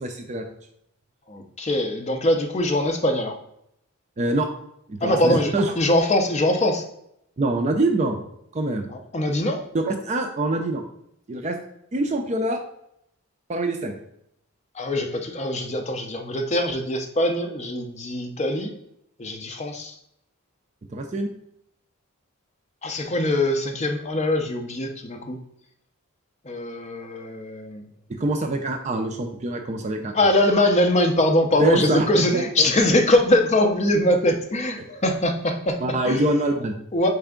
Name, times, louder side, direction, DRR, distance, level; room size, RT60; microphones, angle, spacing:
voice 1, 0.0-0.4 4.2-4.5 4.9-5.7 7.4-8.2 8.5-8.9 9.7-10.8 11.3-11.6 11.9-12.6 13.5-13.9 20.9-21.3 28.2-30.2 31.6-32.1 32.3-32.7 35.8-36.7, right 2 dB, 30° right, 4 dB, 0.3 m, -24 dB
voice 2, 1.3-3.4 5.0-6.8 8.9-9.6 14.8-18.7 19.2-19.9 22.8-25.4 26.5-27.8 30.1-35.8 36.1-36.2 36.9-37.1, left 1 dB, 30° left, 4 dB, 0.5 m, -22 dB
4.3 x 3.4 x 3.7 m, 0.75 s
head